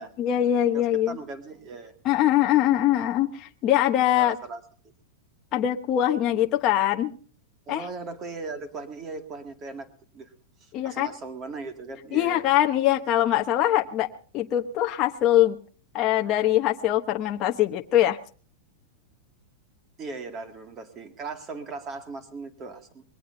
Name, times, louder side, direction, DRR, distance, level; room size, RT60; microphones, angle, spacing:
voice 1, 0.0-1.2 2.0-4.4 5.5-7.1 7.7-7.8 10.7-11.1 12.1-14.1 14.3-15.6 15.9-18.2, left 12 dB, 25° left, 3 dB, 1.0 m, -22 dB
voice 2, 0.7-2.0 4.0-4.6 7.7-9.9 10.1-10.3 10.6-12.4 20.0-23.0, right 3 dB, 20° right, 8 dB, 2.2 m, -38 dB
22.5 x 18.5 x 2.7 m, 0.42 s
supercardioid pair, 175°, 0 cm